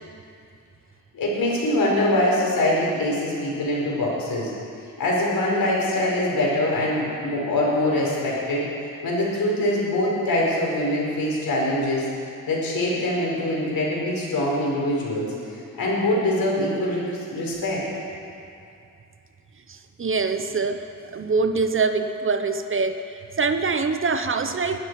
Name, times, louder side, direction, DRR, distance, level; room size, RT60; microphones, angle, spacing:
voice 1, 1.1-4.5 5.0-8.7 9.0-12.0 12.5-15.3 15.8-17.0 17.3-17.8, left 1 dB, 80° left, -4 dB, 4.7 m, -23 dB
voice 2, 19.7-20.8 21.1-23.0 23.4-24.8, right 4 dB, 35° right, 8 dB, 0.9 m, -24 dB
21.0 x 12.0 x 4.8 m, 2.5 s
wide cardioid pair, 125°, 34 cm